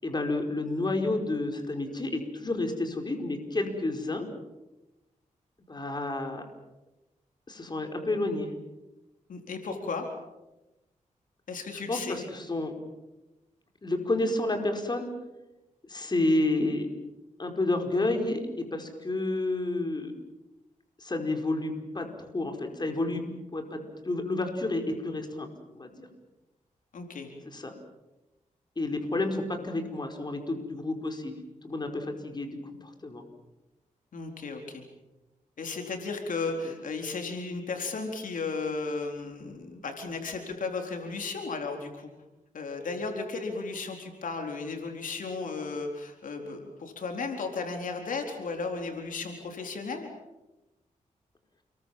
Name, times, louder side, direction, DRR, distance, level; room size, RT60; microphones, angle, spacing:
voice 1, 0.0-4.3 5.7-6.4 7.5-8.5 11.9-12.7 13.8-15.1 15.8-16.9 17.4-20.1 21.0-22.1 22.3-23.2 23.5-25.5 25.7-26.1 27.4-27.7 28.8-31.4 31.6-33.2 36.6-36.7, left 2 dB, 30° left, 4 dB, 5.1 m, -30 dB
voice 2, 9.3-10.1 11.5-12.2 26.9-27.3 34.1-34.8 35.6-42.1 42.5-50.1, left 4 dB, 80° left, 3 dB, 4.2 m, -35 dB
30.0 x 22.5 x 7.5 m, 1.0 s
cardioid pair, 80°, 14 cm